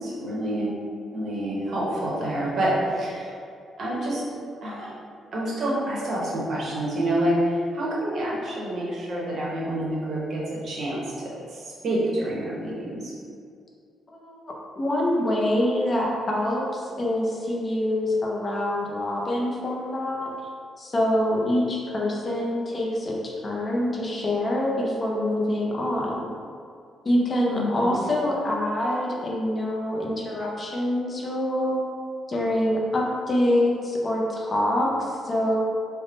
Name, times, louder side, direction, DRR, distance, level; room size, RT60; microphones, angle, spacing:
voice 1, 0.0-0.7 1.1-3.3 3.8-4.2 4.6-4.9 5.3-13.1 27.5-28.0, right 1 dB, 45° right, -5 dB, 0.8 m, -27 dB
voice 2, 14.1-20.3 20.8-26.3 27.0-31.8 32.3-35.6, left 1 dB, 25° left, -2 dB, 0.5 m, -25 dB
3.4 x 2.1 x 3.7 m, 2.4 s
cardioid pair, 165°, 0 cm